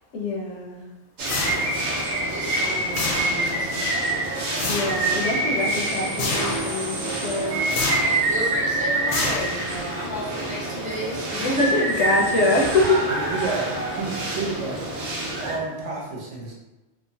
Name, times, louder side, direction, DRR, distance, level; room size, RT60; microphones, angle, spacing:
voice 1, 0.1-0.9 4.7-7.6 11.4-12.9, left 1 dB, 80° left, 0 dB, 0.9 m, -24 dB
sound 1, 1.2-1.9 2.9-3.6 4.6-5.1 6.2-6.7 7.7-8.2 9.1-9.8, left 3 dB, 60° left, 0.6 m, -27 dB
sound 2, 1.2-15.6, right 2 dB, 50° right, 0.6 m, -26 dB
voice 2, 2.2-3.9 8.0-11.8, equal, 10° right, -7 dB, 0.6 m, -33 dB
voice 3, 13.1-14.8 15.4-16.5, right 3 dB, 85° right, -2 dB, 1.0 m, -30 dB
2.9 x 2.1 x 2.7 m, 1.0 s
omnidirectional pair, 1.2 m